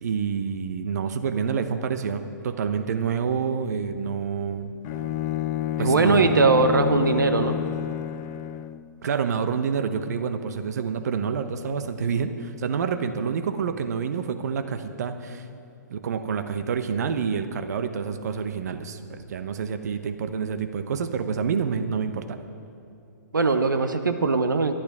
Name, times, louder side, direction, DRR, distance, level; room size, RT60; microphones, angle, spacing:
voice 1, 0.0-4.7 5.8-6.4 9.0-15.5 15.9-22.4, right 6 dB, 55° right, 9 dB, 0.9 m, -28 dB
Bowed string instrument, 4.8-8.9, left 10 dB, 30° left, 0.5 m, -29 dB
voice 2, 5.8-7.6 23.3-24.8, right 3 dB, 80° right, 8 dB, 0.9 m, -20 dB
23.0 x 11.5 x 3.6 m, 2.5 s
figure-of-eight pair, 130°, 10 cm